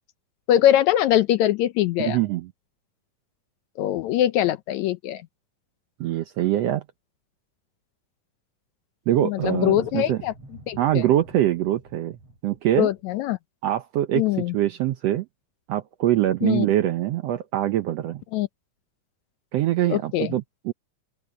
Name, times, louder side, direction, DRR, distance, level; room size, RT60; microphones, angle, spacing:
voice 1, 0.5-2.2 3.8-5.2 9.2-10.3 10.7-11.0 12.8-13.4 14.2-14.5 16.4-16.7 18.3-18.5 19.9-20.3, left 12 dB, 75° left, 1.8 m, -22 dB
voice 2, 2.0-2.5 6.0-6.8 9.1-10.2 10.8-12.2 12.4-12.9 13.6-15.2 15.7-18.2 19.5-20.7, right 13 dB, 75° right, 1.6 m, -23 dB
sound 1, 9.4-13.0, right 1 dB, 50° right, 9.3 m, -45 dB
open air
omnidirectional pair, 3.6 m